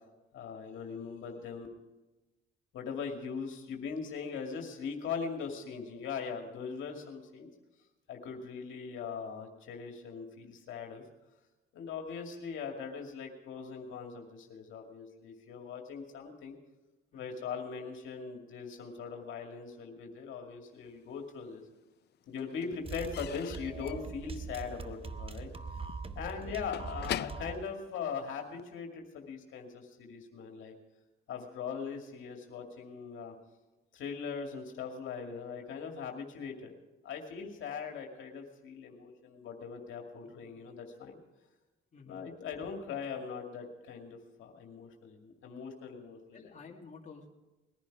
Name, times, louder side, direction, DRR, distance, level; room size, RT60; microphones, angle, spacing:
voice 1, 0.3-1.7 2.7-7.5 8.1-11.0 11.7-16.6 17.1-21.6 22.3-25.5 26.2-30.8 31.3-33.3 33.9-36.7 37.0-41.2 42.1-46.4, left 6 dB, 80° left, 2 dB, 2.3 m, -40 dB
voice 2, 17.1-17.5 26.4-26.5 40.2-40.6 41.9-42.2 46.3-47.3, left 5 dB, 40° left, 0 dB, 2.2 m, -52 dB
Slam / Squeak / Wood, 20.9-21.7 22.0-28.7, left 12 dB, 55° left, 0.4 m, -44 dB
sound 1, 22.8-27.7, right 4 dB, 30° right, 0.8 m, -42 dB
20.5 x 10.5 x 4.8 m, 1.1 s
cardioid pair, 90°, 20 cm